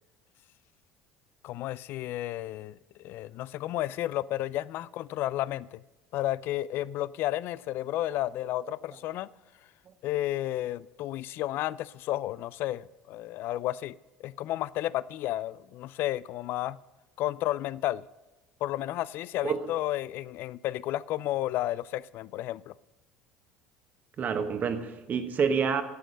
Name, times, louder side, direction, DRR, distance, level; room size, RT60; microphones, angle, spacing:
voice 1, 1.4-5.8 6.1-9.3 10.0-14.0 14.2-16.8 17.2-18.0 18.6-22.7, left 14 dB, 55° left, 0.4 m, -32 dB
voice 2, 24.2-25.8, right 6 dB, 40° right, 1.3 m, -28 dB
11.5 x 8.2 x 5.3 m
hypercardioid pair, 70°, 4 cm